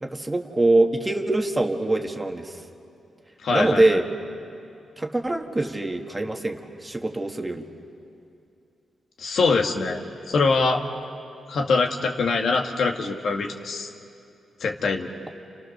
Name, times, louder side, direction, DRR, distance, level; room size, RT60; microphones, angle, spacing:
voice 1, 0.0-2.6 3.5-4.1 5.0-7.6, right 2 dB, 15° right, 3 dB, 1.9 m, -23 dB
voice 2, 3.4-4.0 9.2-10.0 10.3-10.8 11.5-13.9 14.6-15.1, left 4 dB, 65° left, 2 dB, 2.0 m, -23 dB
30.0 x 29.5 x 6.7 m, 2.6 s
cardioid pair, 110°, 0 cm